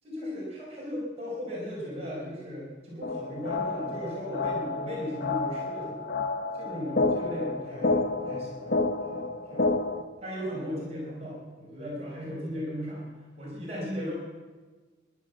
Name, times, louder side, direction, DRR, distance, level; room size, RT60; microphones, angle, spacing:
voice 1, 0.0-6.0 6.6-9.9 10.2-13.0 13.4-14.1, equal, 35° right, -5 dB, 5.5 m, -37 dB
sound 1, 3.0-10.0, left 3 dB, 50° left, 1.0 m, -30 dB
15.0 x 11.5 x 7.4 m, 1.4 s
head